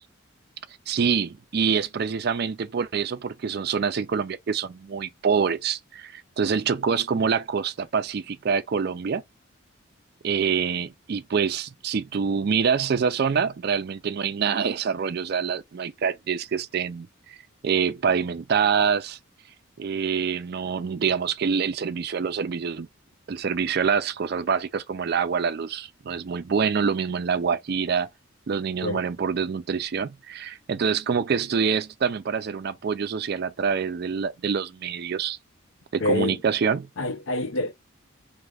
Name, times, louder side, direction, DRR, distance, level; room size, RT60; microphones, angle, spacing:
voice 1, 0.9-9.2 10.2-17.4 17.6-19.2 19.8-22.9 23.3-28.1 28.5-35.4 35.9-36.9, right 6 dB, 50° right, 0.4 m, -26 dB
voice 2, 36.0-36.4 37.0-37.7, left 2 dB, 70° left, 0.6 m, -26 dB
2.6 x 2.4 x 3.3 m
head